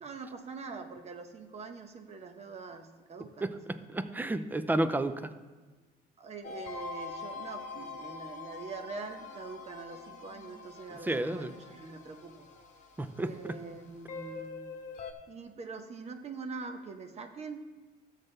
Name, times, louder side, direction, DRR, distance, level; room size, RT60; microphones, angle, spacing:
voice 1, 0.0-3.6 6.2-12.5 13.2-14.8 15.3-17.7, right 4 dB, 40° right, 7 dB, 0.9 m, -44 dB
voice 2, 3.4-5.3 11.0-11.5 13.0-13.6, right 2 dB, 10° right, 11 dB, 0.5 m, -32 dB
sound 1, 6.4-15.1, left 4 dB, 45° left, 1.0 m, -44 dB
12.5 x 7.4 x 3.3 m, 1.3 s
cardioid pair, 110°, 17 cm